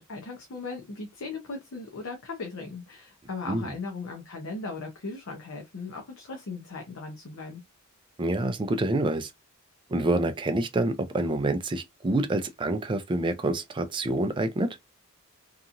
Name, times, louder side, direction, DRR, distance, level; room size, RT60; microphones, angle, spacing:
voice 1, 0.0-7.6, left 3 dB, 65° left, 0.6 m, -38 dB
voice 2, 8.2-9.3 9.9-14.8, right 2 dB, 20° right, 0.3 m, -27 dB
2.8 x 2.4 x 2.5 m
head